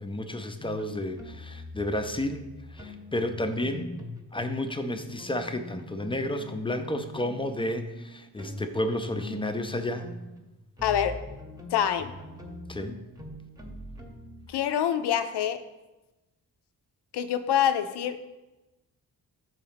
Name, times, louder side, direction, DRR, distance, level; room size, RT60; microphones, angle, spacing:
voice 1, 0.0-2.4 2.7-3.9 4.3-10.1 12.7-13.1, left 1 dB, 15° left, 7 dB, 0.5 m, -31 dB
sound 1, 0.6-4.7 5.0-14.5, left 2 dB, 10° right, 0.8 m, -43 dB
voice 2, 10.8-11.2 11.7-12.1 14.5-15.6 17.1-18.2, left 9 dB, 80° left, 10 dB, 0.6 m, -26 dB
5.8 x 4.2 x 5.7 m, 1.0 s
cardioid pair, 110°, 39 cm